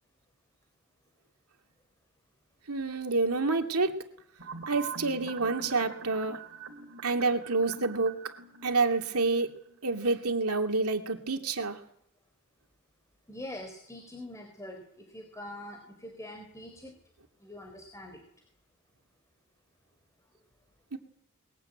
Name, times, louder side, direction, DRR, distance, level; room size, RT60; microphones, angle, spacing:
voice 1, 2.7-3.9 4.7-6.4 7.0-8.2 8.6-9.5 9.8-11.8 20.9-21.0, right 3 dB, 85° right, 4 dB, 2.5 m, -28 dB
sound 1, 4.4-9.8 10.0-10.1, right 4 dB, 60° right, 3.3 m, -44 dB
voice 2, 13.3-16.9 17.4-18.2, left 1 dB, 15° left, 5 dB, 3.8 m, -44 dB
22.5 x 21.0 x 9.2 m, 0.72 s
head